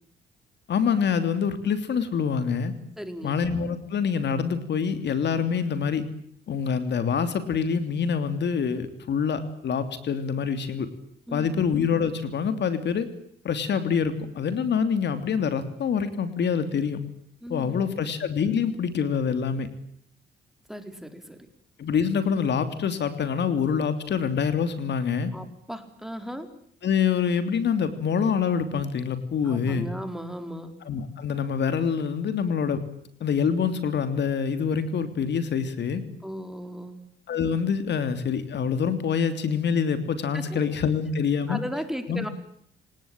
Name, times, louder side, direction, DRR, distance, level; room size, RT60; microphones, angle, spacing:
voice 1, 0.7-2.7 3.2-6.0 6.5-10.9 11.3-13.1 13.4-17.0 17.5-19.7 21.8-25.3 26.8-29.9 30.9-32.8 33.2-36.0 37.3-41.6 42.1-42.3, left 6 dB, 60° left, 10 dB, 3.1 m, -26 dB
voice 2, 3.0-3.4 11.3-11.6 17.4-18.0 20.7-21.5 25.3-26.5 29.4-30.7 36.2-37.0 40.3-40.6 41.5-42.3, equal, ahead, 8 dB, 4.5 m, -36 dB
28.0 x 19.0 x 9.0 m, 0.68 s
cardioid pair, 90°, 20 cm